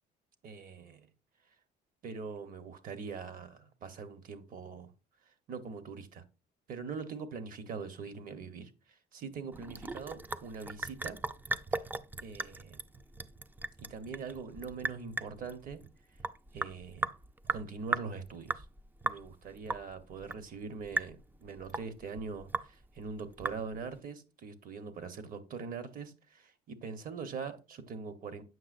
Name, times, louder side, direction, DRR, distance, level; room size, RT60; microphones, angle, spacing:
voice 1, 0.4-1.1 2.0-4.9 5.3-6.2 6.7-11.2 12.2-12.8 13.8-15.8 16.5-17.1 17.5-18.6 19.0-28.4, right 5 dB, 55° right, 1.1 m, -42 dB
Sink (filling or washing) / Drip, 9.5-24.0, right 3 dB, 10° right, 0.3 m, -38 dB
7.7 x 5.8 x 2.5 m
cardioid pair, 110°, 17 cm